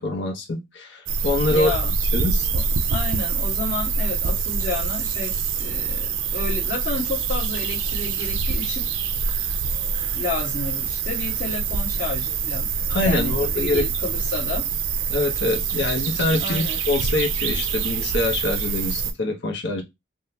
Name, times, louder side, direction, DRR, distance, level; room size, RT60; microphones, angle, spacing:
voice 1, 0.0-1.7 2.1-2.5 12.9-13.9 15.1-19.8, left 2 dB, 60° left, 0.7 m, -24 dB
sound 1, 1.1-19.1, right 5 dB, 75° right, 0.5 m, -25 dB
voice 2, 1.5-1.9 2.5-2.6 2.9-8.8 10.1-12.7 13.0-14.6 16.4-16.8, left 3 dB, 40° left, 1.4 m, -31 dB
3.6 x 2.1 x 2.8 m
head